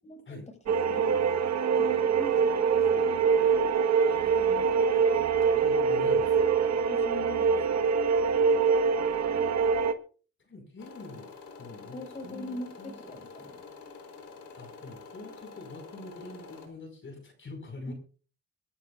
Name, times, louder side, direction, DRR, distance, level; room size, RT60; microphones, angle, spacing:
voice 1, 0.0-1.4 1.8-3.2 4.4-4.7 6.9-7.8 11.9-13.6 17.9-18.0, left 1 dB, 20° left, 3 dB, 5.8 m, -43 dB
sound 1, 0.7-9.9, right 6 dB, 60° right, 1.5 m, -24 dB
voice 2, 4.6-6.6 10.4-11.3 11.6-12.9 14.6-17.9, left 2 dB, 40° left, 3 dB, 5.4 m, -45 dB
sound 2, 10.8-16.7, left 4 dB, 70° left, 4.0 m, -47 dB
24.0 x 12.0 x 2.5 m, 0.39 s
cardioid pair, 90°, 30 cm